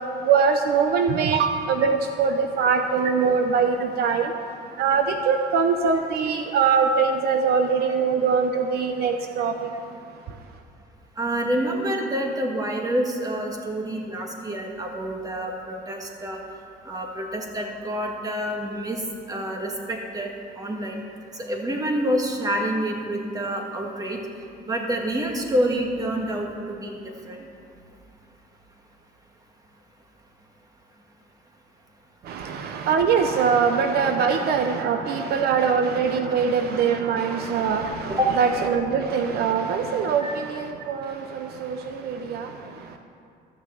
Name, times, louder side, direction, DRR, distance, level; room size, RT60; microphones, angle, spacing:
voice 1, 0.2-4.3 4.8-9.5 32.3-42.5, right 6 dB, 70° right, 5 dB, 0.8 m, -22 dB
voice 2, 11.2-16.4 16.9-19.0 19.3-20.3 20.6-21.0 21.4-24.2 24.7-27.0 27.3-27.4 38.2-38.3 40.2-40.3, equal, 20° right, 1 dB, 1.9 m, -27 dB
13.5 x 6.3 x 7.7 m, 2.5 s
cardioid pair, 110°, 17 cm